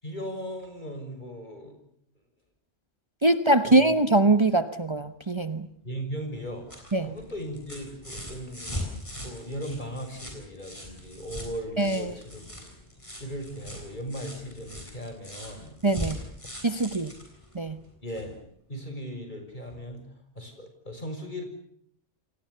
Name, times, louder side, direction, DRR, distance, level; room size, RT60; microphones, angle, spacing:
voice 1, 0.0-1.8 3.6-3.8 5.8-8.9 9.2-12.7 13.2-15.8 18.0-18.4 18.7-20.1 20.3-21.4, equal, 45° left, 6 dB, 6.6 m, -38 dB
voice 2, 3.2-5.7 6.9-7.1 11.8-12.1 15.8-16.2 16.6-17.1 17.5-17.8, right 2 dB, 25° right, 10 dB, 1.1 m, -22 dB
sound 1, 6.3-18.4 19.7-19.8, left 1 dB, 25° left, 7.7 m, -41 dB
29.5 x 24.0 x 6.9 m, 0.66 s
omnidirectional pair, 1.1 m